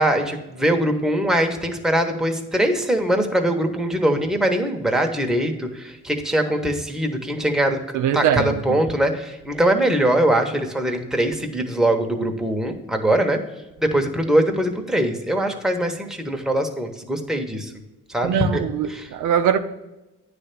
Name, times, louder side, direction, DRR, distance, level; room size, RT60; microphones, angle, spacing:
voice 1, 0.0-7.8 8.1-13.4 13.8-17.7 18.1-18.6 18.9-19.1, right 1 dB, ahead, 1.0 m, -22 dB
voice 2, 7.9-8.8 18.2-19.6, right 9 dB, 80° right, 0.6 m, -22 dB
9.5 x 3.4 x 6.7 m
cardioid pair, 90°, 30 cm